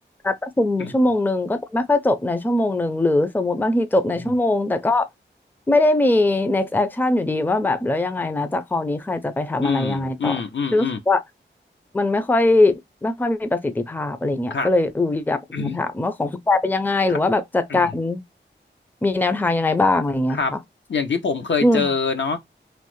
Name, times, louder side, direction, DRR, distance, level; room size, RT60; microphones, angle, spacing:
voice 1, 0.2-5.1 5.7-10.4 10.7-11.2 11.9-18.2 19.0-20.6 21.6-21.9, left 2 dB, 10° left, 0.4 m, -21 dB
voice 2, 9.6-11.0 14.5-14.7 15.5-15.8 17.1-17.2 17.7-17.8 20.3-20.5 20.9-22.4, left 5 dB, 70° left, 0.7 m, -25 dB
3.1 x 2.0 x 3.0 m
wide cardioid pair, 60°, 20 cm